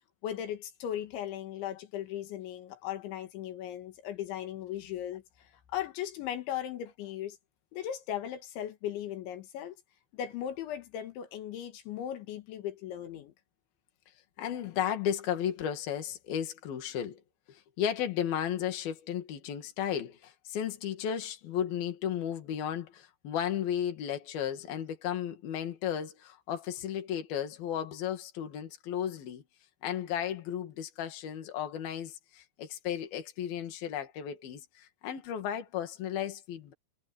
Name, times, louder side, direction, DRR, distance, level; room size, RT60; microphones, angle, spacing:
voice 1, 0.2-5.2 5.7-7.4 7.7-9.8 10.1-13.3, left 11 dB, 80° left, 4.2 m, -37 dB
voice 2, 14.4-17.2 17.5-29.4 29.8-36.7, left 9 dB, 60° left, 4.0 m, -34 dB
omnidirectional pair, 5.2 m